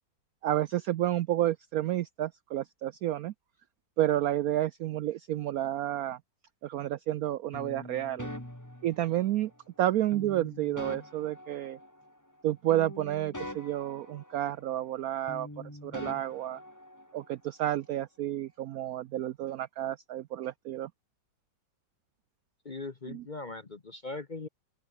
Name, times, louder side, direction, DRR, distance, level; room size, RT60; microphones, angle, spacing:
voice 1, 0.4-3.3 4.0-6.2 6.6-8.3 8.8-9.5 9.8-11.8 12.4-15.5 15.8-16.6 17.1-20.9 23.1-23.2, right 13 dB, 75° right, 0.8 m, -30 dB
sound 1, 7.5-9.5 10.1-12.4 12.7-15.0 15.3-17.3, left 1 dB, 10° left, 3.8 m, -44 dB
voice 2, 22.6-24.5, left 3 dB, 35° left, 0.9 m, -40 dB
omnidirectional pair, 2.1 m